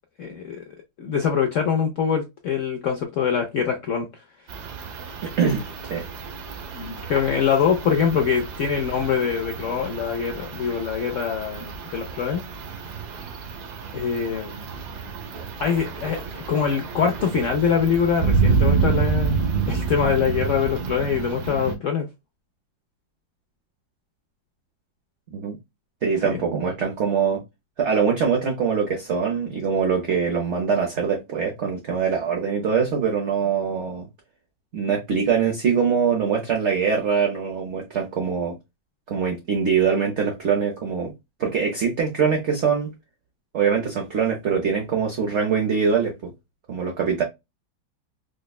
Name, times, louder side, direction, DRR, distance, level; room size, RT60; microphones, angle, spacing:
voice 1, 0.2-0.6 1.0-4.1 6.7-12.4 13.9-14.7 15.6-22.1 26.3-26.4, left 7 dB, 80° left, 0.7 m, -24 dB
sound 1, 4.5-21.7, right 5 dB, 90° right, 1.6 m, -28 dB
voice 2, 5.2-6.0 25.3-25.6 26.0-27.4 27.8-34.1 34.7-38.6 39.1-41.1 41.4-42.9 43.5-46.3 46.7-47.2, right 6 dB, 60° right, 0.8 m, -23 dB
5.0 x 2.1 x 2.3 m
omnidirectional pair, 2.0 m